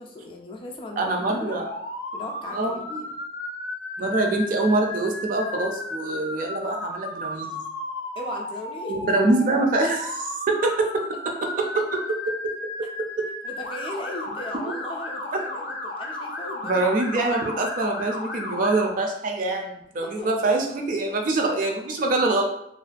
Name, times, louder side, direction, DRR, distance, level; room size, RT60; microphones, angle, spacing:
voice 1, 0.0-1.6 2.1-3.1 8.2-9.0 13.4-16.8 20.0-20.3, left 1 dB, 30° left, 1 dB, 0.3 m, -37 dB
voice 2, 1.0-1.7 2.5-2.8 4.0-7.6 8.9-11.0 11.6-12.5 13.2-13.3 16.6-22.5, right 2 dB, 50° right, 2 dB, 0.4 m, -24 dB
Motor vehicle (road) / Siren, 1.6-18.9, left 2 dB, 85° left, 0.5 m, -34 dB
2.4 x 2.1 x 2.4 m, 0.78 s
head